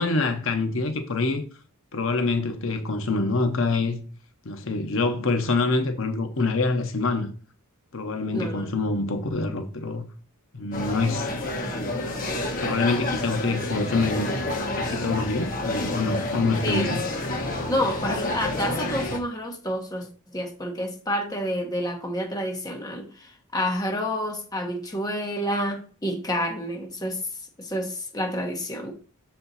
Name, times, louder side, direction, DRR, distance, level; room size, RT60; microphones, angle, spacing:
voice 1, 0.0-1.4 1.9-4.0 4.4-7.3 7.9-10.1 10.5-11.3 12.6-14.4 14.7-17.0, left 3 dB, 60° left, 0.8 m, -26 dB
voice 2, 8.3-8.7 16.6-16.9 17.7-27.2 27.6-28.9, equal, 15° left, 1.0 m, -29 dB
sound 1, 10.7-19.2, left 2 dB, 40° left, 1.1 m, -29 dB
6.7 x 4.3 x 4.0 m
head